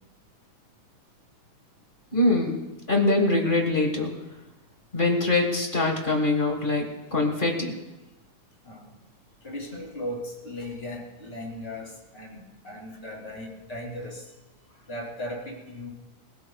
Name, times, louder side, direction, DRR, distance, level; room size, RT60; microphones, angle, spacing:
voice 1, 2.1-2.6 2.9-4.1 4.9-7.7, left 2 dB, 35° left, 2 dB, 0.8 m, -23 dB
voice 2, 8.6-9.0 9.4-14.3 14.9-15.9, left 1 dB, 20° left, -2 dB, 2.9 m, -37 dB
26.5 x 16.5 x 2.4 m, 1.0 s
omnidirectional pair, 3.8 m